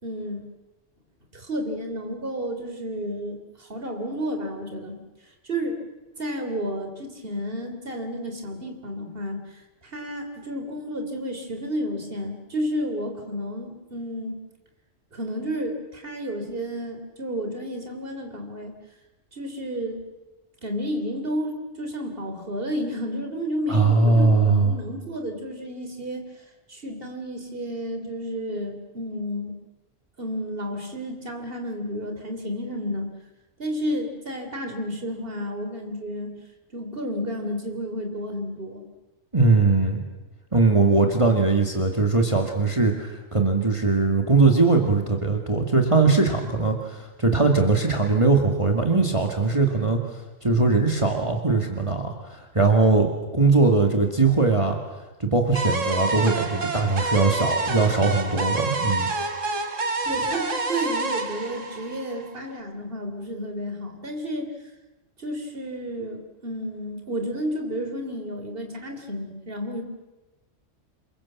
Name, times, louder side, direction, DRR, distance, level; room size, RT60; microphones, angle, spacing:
voice 1, 0.0-0.5 1.3-5.0 5.4-5.8 6.2-14.4 15.1-18.7 19.3-20.0 20.6-29.6 30.2-33.1 33.6-36.3 36.7-38.8 60.0-64.5 65.2-69.8, equal, 50° right, 5 dB, 3.6 m, -31 dB
voice 2, 23.7-24.7 39.3-40.0 40.5-54.8 55.2-59.1, right 3 dB, 25° right, 3 dB, 2.4 m, -20 dB
sound 1, 55.6-62.5, right 3 dB, 80° right, 2.3 m, -28 dB
28.0 x 22.5 x 7.4 m, 1.1 s
omnidirectional pair, 1.3 m